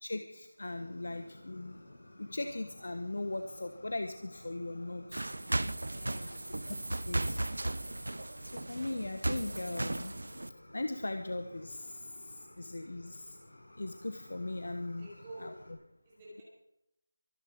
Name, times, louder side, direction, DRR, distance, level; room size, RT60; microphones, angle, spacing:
voice 1, 0.0-1.8 2.2-5.2 6.7-6.8 7.1-7.4 8.4-10.2 10.7-13.4 13.8-15.1 15.4-15.5, left 2 dB, 50° left, 8 dB, 1.2 m, -39 dB
Fire, 0.7-15.7, left 1 dB, 75° left, 5.6 m, -55 dB
sound 1, 5.1-10.5, right 1 dB, 80° right, 0.8 m, -36 dB
voice 2, 5.9-6.4 15.0-15.5 16.0-16.4, right 1 dB, 10° right, -7 dB, 4.8 m, -50 dB
23.5 x 11.0 x 5.2 m, 0.82 s
figure-of-eight pair, 180°, 0 cm